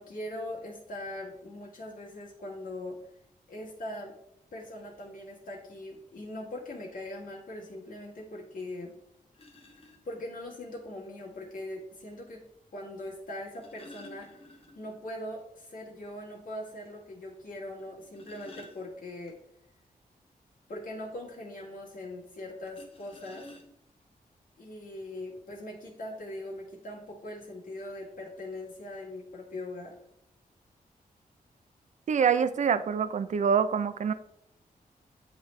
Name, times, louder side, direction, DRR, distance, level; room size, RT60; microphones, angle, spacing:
voice 1, 0.0-3.0 3.5-4.1 4.5-8.9 9.8-12.4 12.7-14.3 14.7-19.4 20.7-23.5 24.6-29.9, left 1 dB, 70° left, -3 dB, 1.4 m, -41 dB
sound 1, 9.3-10.0 11.4-11.5 13.3-15.0 15.3-15.4 15.9-16.0 16.5-16.6 17.8-19.3 22.7-24.0 24.9-25.0 25.3-25.6, left 2 dB, 40° left, 1.1 m, -52 dB
voice 2, 32.1-34.1, right 7 dB, 55° right, 12 dB, 0.4 m, -25 dB
9.4 x 3.2 x 3.2 m, 0.78 s
wide cardioid pair, 130°, 15 cm